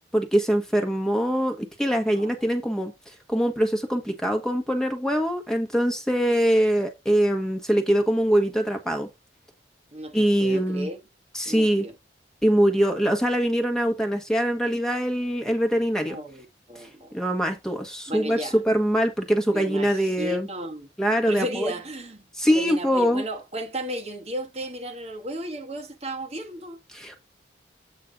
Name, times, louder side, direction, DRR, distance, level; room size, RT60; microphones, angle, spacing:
voice 1, 0.0-2.9 3.3-9.1 10.1-10.9 11.3-11.9 12.4-16.2 16.8-16.9 17.1-20.5 21.0-21.7 22.4-23.2 26.9-27.2, equal, 5° left, 1.3 m, -23 dB
voice 2, 9.9-11.0 11.4-11.9 16.0-17.1 18.1-18.6 19.5-20.9 21.3-22.2 22.5-26.8, right 1 dB, 35° right, 1.3 m, -34 dB
8.5 x 4.1 x 5.2 m
head